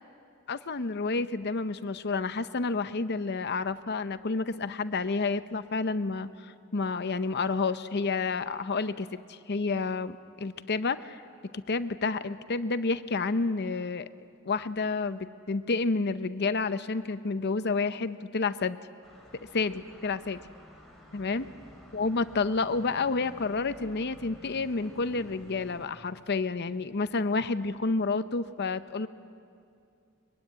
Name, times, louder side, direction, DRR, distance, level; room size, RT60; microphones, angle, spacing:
voice 1, 0.5-11.2 11.5-14.1 14.5-18.8 19.5-20.4 21.1-21.5 21.9-29.1, left 4 dB, 55° left, 12 dB, 0.7 m, -30 dB
sound 1, 19.0-25.8, equal, ahead, 4.9 m, -52 dB
23.5 x 23.0 x 9.8 m, 2.5 s
head